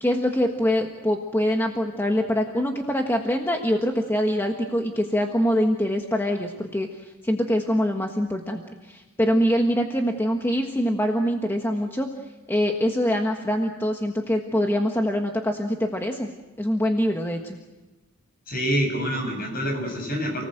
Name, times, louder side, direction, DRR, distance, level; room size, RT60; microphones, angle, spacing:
voice 1, 0.0-12.1 12.5-16.3 16.6-17.6, equal, 10° left, 2 dB, 1.5 m, -24 dB
voice 2, 18.5-20.4, equal, 45° left, 3 dB, 7.9 m, -26 dB
29.5 x 19.0 x 7.9 m, 1.2 s
head